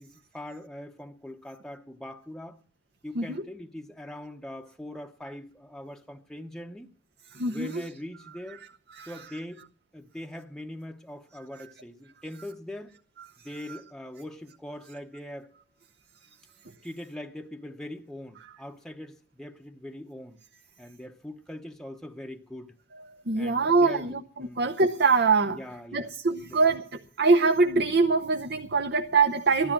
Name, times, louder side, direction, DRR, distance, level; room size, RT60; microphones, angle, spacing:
voice 1, 0.0-2.6 3.0-6.9 7.5-8.6 9.1-9.7 9.9-12.9 13.4-15.5 16.8-20.4 20.8-22.7 23.4-24.6 25.5-26.1 26.5-26.6 29.6-29.7, left 1 dB, 5° left, 0.8 m, -41 dB
voice 2, 7.3-7.8 8.9-9.3 13.7-13.8 23.3-25.6 25.9-29.7, right 4 dB, 55° right, 0.8 m, -24 dB
14.5 x 12.5 x 5.9 m
head